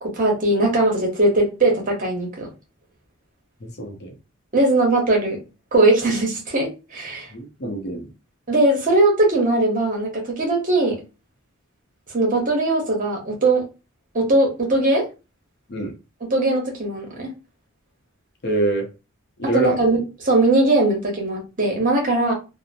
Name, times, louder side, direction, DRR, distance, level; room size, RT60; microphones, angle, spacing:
voice 1, 0.0-2.5 4.5-5.4 5.7-7.3 8.5-11.0 12.1-13.6 14.1-15.1 16.2-17.3 19.4-22.3, right 2 dB, 40° right, 0.9 m, -20 dB
voice 2, 3.6-4.1 7.3-8.0 15.7-15.9 18.4-18.9 19.4-19.8, right 2 dB, 50° left, 0.6 m, -25 dB
2.8 x 2.0 x 2.5 m
head